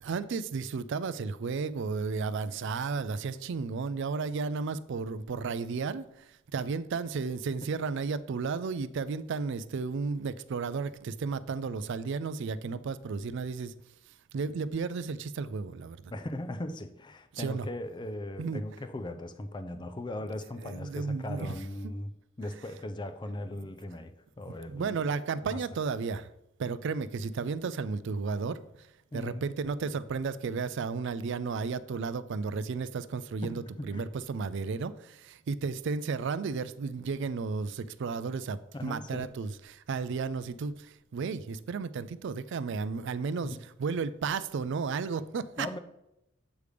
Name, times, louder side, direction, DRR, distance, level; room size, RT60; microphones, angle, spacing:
voice 1, 0.0-13.7 14.3-16.1 17.3-17.7 18.4-18.6 20.6-21.6 21.8-21.9 24.7-26.3 26.6-28.9 29.1-45.7, right 4 dB, 60° right, 0.4 m, -33 dB
voice 2, 16.1-22.1 22.4-25.1 25.4-25.6 29.1-29.5 33.4-34.0 38.7-39.3 43.5-43.6 45.6-45.8, left 1 dB, 20° left, 0.4 m, -39 dB
8.0 x 3.4 x 4.9 m
head